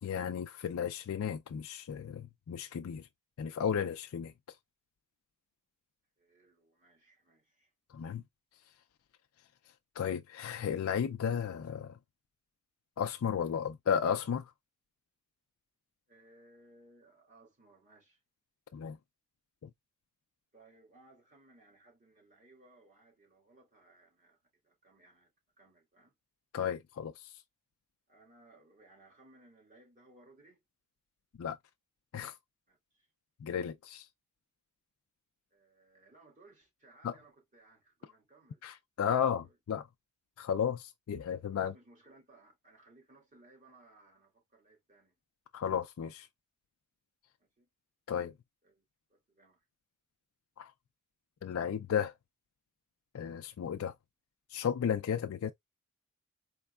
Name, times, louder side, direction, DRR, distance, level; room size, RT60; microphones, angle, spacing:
voice 1, 0.0-3.1 3.4-4.6 7.9-8.2 10.0-12.0 13.0-14.5 18.7-19.0 19.6-19.7 26.5-27.4 31.4-31.6 32.1-32.4 33.4-34.1 37.0-37.1 38.6-39.9 40.4-41.7 45.5-46.3 48.1-48.3 50.6-50.7 51.4-52.1 53.1-53.9 54.5-55.5, left 8 dB, 65° left, 0.3 m, -34 dB
voice 2, 6.2-7.7 16.1-18.2 20.5-26.1 28.1-30.6 32.7-33.1 35.5-38.7 39.0-39.6 41.5-45.2 47.6-47.7 48.6-49.7, right 2 dB, 35° right, 2.2 m, -62 dB
4.3 x 3.2 x 2.2 m
head